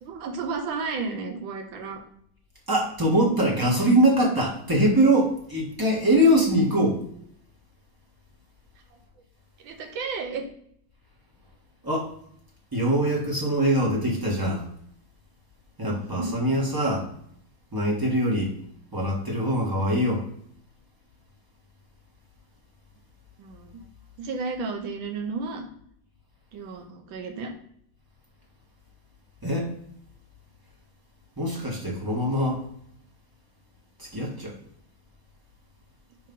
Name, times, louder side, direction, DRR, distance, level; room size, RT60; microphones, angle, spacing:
voice 1, 0.0-2.0 9.6-10.4 15.9-16.4 23.4-23.8 24.2-25.7 26.5-27.5, right 4 dB, 75° right, 4 dB, 1.7 m, -33 dB
voice 2, 2.7-7.0 11.8-12.1 12.7-14.6 15.8-17.1 17.7-18.5 18.9-20.3 29.4-29.7 31.4-32.6 34.1-34.5, right 1 dB, 10° right, -1 dB, 1.3 m, -23 dB
5.7 x 3.1 x 5.4 m, 0.68 s
omnidirectional pair, 2.2 m